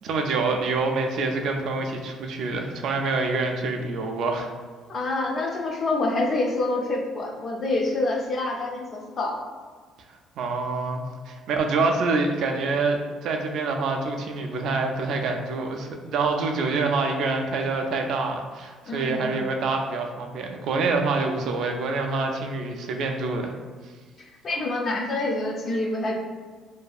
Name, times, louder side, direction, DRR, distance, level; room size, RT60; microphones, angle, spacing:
voice 1, 0.0-4.5 10.4-23.5, right 3 dB, 60° right, 3 dB, 0.3 m, -26 dB
voice 2, 4.9-9.4 18.9-19.5 24.2-26.2, left 2 dB, 35° left, 0 dB, 0.4 m, -27 dB
2.6 x 2.4 x 2.3 m, 1.5 s
cardioid pair, 140°, 0 cm